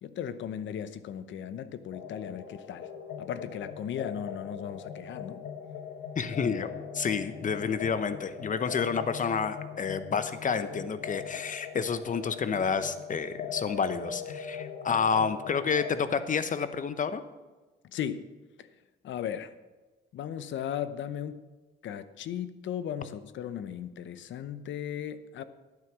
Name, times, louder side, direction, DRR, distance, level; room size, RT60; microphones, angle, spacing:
voice 1, 0.0-2.9 3.2-5.4 17.9-18.3 18.6-18.7 19.0-19.5 20.1-21.4 21.8-25.4, left 9 dB, 70° left, 13 dB, 0.8 m, -36 dB
sound 1, 1.9-16.0, left 7 dB, 90° left, 1.4 m, -40 dB
voice 2, 6.2-17.2, left 6 dB, 40° left, 12 dB, 0.9 m, -29 dB
11.0 x 9.3 x 6.2 m, 1.2 s
cardioid pair, 90°, 20 cm